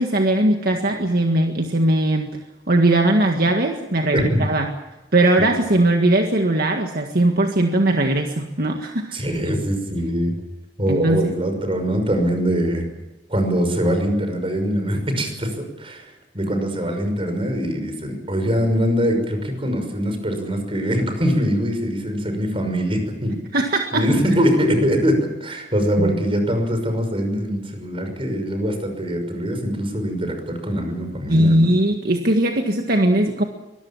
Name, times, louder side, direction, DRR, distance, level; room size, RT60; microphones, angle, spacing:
voice 1, 0.0-2.3 2.7-4.7 5.1-9.2 10.9-11.3 23.5-24.1 26.0-26.1 31.3-33.4, right 1 dB, 55° right, 3 dB, 1.8 m, -19 dB
voice 2, 4.1-4.4 5.4-5.5 9.1-10.4 10.8-12.9 13.3-23.4 23.9-31.7, equal, 30° right, 6 dB, 5.9 m, -22 dB
24.5 x 20.5 x 7.4 m, 1.1 s
head